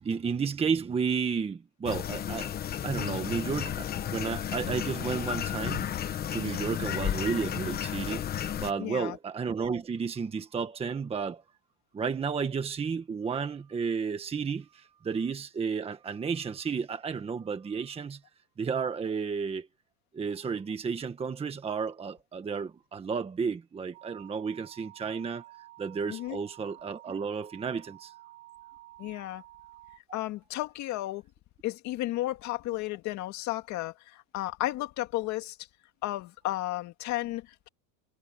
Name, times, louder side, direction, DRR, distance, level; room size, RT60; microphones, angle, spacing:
voice 1, 0.0-2.6 2.8-11.4 11.9-18.2 18.6-19.7 20.1-25.4 25.8-28.1, right 6 dB, 15° right, 1.4 m, -32 dB
sound 1, 1.9-8.7, left 10 dB, 25° left, 1.0 m, -33 dB
voice 2, 8.8-9.2 26.1-26.4 29.0-29.4 30.1-31.2 31.6-35.6 36.0-37.7, left 16 dB, 40° left, 2.1 m, -33 dB
sound 2, 23.9-30.0, right 17 dB, 65° right, 4.3 m, -52 dB
supercardioid pair, 160°, 42 cm